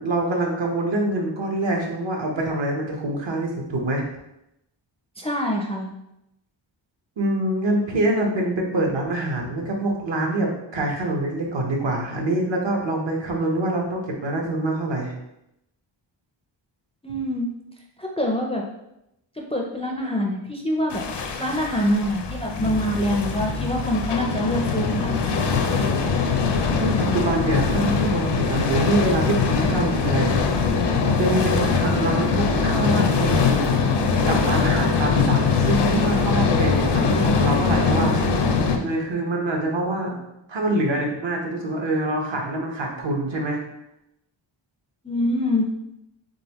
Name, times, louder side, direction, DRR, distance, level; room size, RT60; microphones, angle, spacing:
voice 1, 0.0-4.0 7.2-15.1 26.7-30.3 31.2-33.6 34.2-40.2 40.5-43.6, right 1 dB, 65° right, 0 dB, 1.0 m, -25 dB
voice 2, 5.2-5.9 17.0-17.5 18.0-18.6 19.4-21.0 21.4-26.0 45.0-45.7, left 1 dB, 15° left, 0 dB, 0.4 m, -25 dB
sound 1, 20.9-38.8, left 5 dB, 60° left, 0.6 m, -22 dB
3.9 x 3.5 x 2.9 m, 0.84 s
wide cardioid pair, 120°, 47 cm